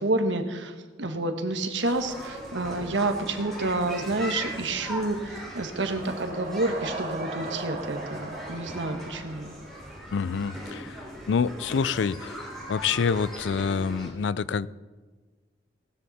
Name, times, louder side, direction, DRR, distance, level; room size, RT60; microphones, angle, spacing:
voice 1, 0.0-9.5, right 2 dB, 85° right, 6 dB, 1.5 m, -29 dB
sound 1, 1.8-14.1, equal, ahead, 4.8 m, -39 dB
sound 2, 5.4-10.3, right 2 dB, 50° right, 2.1 m, -38 dB
voice 2, 10.1-12.4 12.7-14.7, left 6 dB, 75° left, 19 dB, 0.4 m, -27 dB
18.5 x 13.0 x 4.2 m, 1.4 s
head